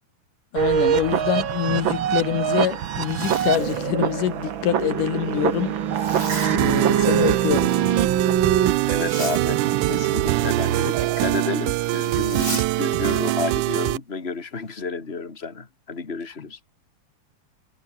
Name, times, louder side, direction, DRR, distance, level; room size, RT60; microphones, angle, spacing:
voice 1, 0.5-5.7 6.5-7.7, left 11 dB, 80° left, 3.0 m, -25 dB
sound 1, 0.6-11.5, right 9 dB, 55° right, 1.5 m, -24 dB
Zipper (clothing), 2.9-3.9 5.9-6.6 8.9-9.4 12.1-12.7, right 2 dB, 15° right, 5.2 m, -34 dB
sound 2, 6.6-14.0, right 19 dB, 80° right, 2.0 m, -23 dB
voice 2, 8.8-16.6, left 4 dB, 20° left, 3.0 m, -31 dB
omnidirectional pair, 3.7 m